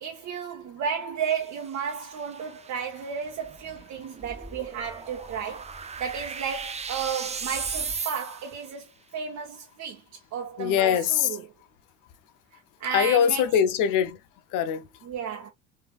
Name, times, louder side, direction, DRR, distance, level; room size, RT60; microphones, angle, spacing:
voice 1, 0.0-5.7 6.0-11.4 12.5-13.5 15.1-15.5, right 7 dB, 55° right, 0.9 m, -33 dB
sound 1, 1.2-8.7, right 5 dB, 20° right, 0.5 m, -38 dB
sound 2, 3.4-8.0, equal, 5° left, 1.5 m, -49 dB
voice 2, 10.6-11.4 12.9-14.2 14.5-14.9, left 9 dB, 70° left, 0.7 m, -22 dB
3.4 x 3.3 x 2.3 m
supercardioid pair, 75°, 34 cm